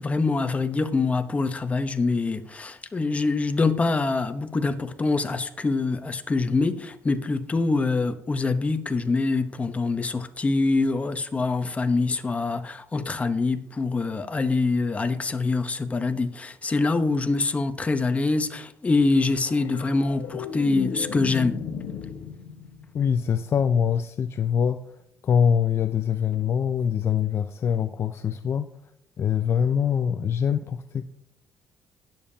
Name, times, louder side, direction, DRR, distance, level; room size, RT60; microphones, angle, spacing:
voice 1, 0.0-21.6, left 3 dB, 20° left, 9 dB, 0.9 m, -25 dB
sound 1, 19.4-23.9 26.3-26.5, left 7 dB, 75° left, 1.0 m, -36 dB
voice 2, 22.9-24.8 25.2-28.7 29.2-31.1, left 7 dB, 45° left, 9 dB, 0.5 m, -24 dB
19.0 x 7.2 x 2.8 m, 0.77 s
cardioid pair, 105°, 6 cm